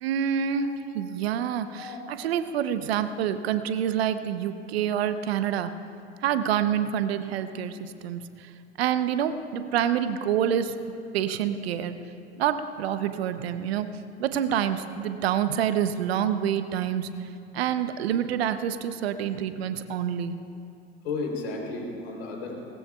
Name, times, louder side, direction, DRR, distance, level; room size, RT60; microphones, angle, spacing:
voice 1, 0.0-5.7 6.2-8.5 8.8-10.8 11.1-12.0 12.4-13.9 14.2-17.1 17.5-20.4, right 9 dB, 75° right, 10 dB, 0.9 m, -27 dB
voice 2, 21.0-22.5, left 3 dB, 75° left, 0 dB, 3.6 m, -33 dB
20.5 x 19.0 x 2.4 m, 2.6 s
hypercardioid pair, 70°, 31 cm